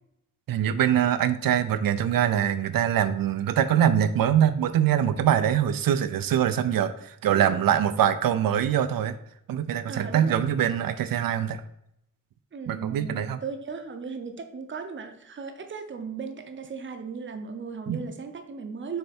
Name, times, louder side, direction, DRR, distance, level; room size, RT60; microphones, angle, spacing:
voice 1, 0.5-9.2 9.5-11.6 12.7-13.4 17.9-18.0, right 9 dB, 90° right, 11 dB, 0.5 m, -23 dB
voice 2, 7.3-7.6 9.9-10.4 12.5-19.0, right 5 dB, 35° right, 7 dB, 0.6 m, -36 dB
6.7 x 3.4 x 4.3 m, 0.78 s
wide cardioid pair, 160°, 34 cm